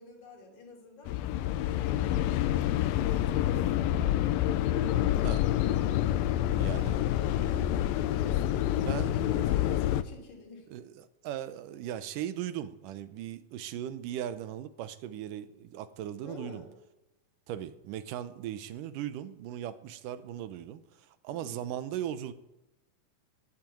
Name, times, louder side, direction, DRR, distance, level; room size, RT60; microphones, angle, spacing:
voice 1, 0.0-2.3 2.9-4.1 6.6-10.7 16.2-16.7 21.3-21.7, left 3 dB, 55° left, -1 dB, 4.3 m, -48 dB
sound 1, 1.1-10.0, left 12 dB, 85° left, 2.4 m, -27 dB
voice 2, 6.6-7.0 7.3-7.7 8.9-9.1 10.7-16.6 17.5-22.3, right 11 dB, 75° right, 12 dB, 2.3 m, -38 dB
12.0 x 11.0 x 9.1 m, 0.93 s
omnidirectional pair, 4.1 m